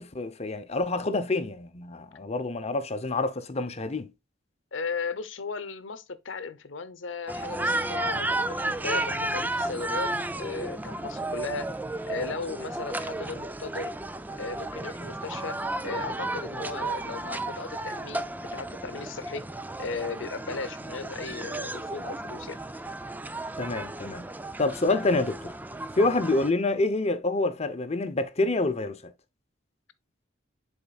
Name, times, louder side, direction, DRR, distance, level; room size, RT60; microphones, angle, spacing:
voice 1, 0.0-4.1 23.6-24.3 24.6-25.5 26.0-29.1, left 2 dB, 35° left, 0.7 m, -27 dB
voice 2, 4.7-11.7 12.1-13.9 14.4-15.6 15.8-19.5 19.8-22.6, left 4 dB, 85° left, 0.8 m, -36 dB
sound 1, 7.3-26.5, right 2 dB, 10° right, 0.4 m, -33 dB
10.0 x 4.4 x 2.4 m
head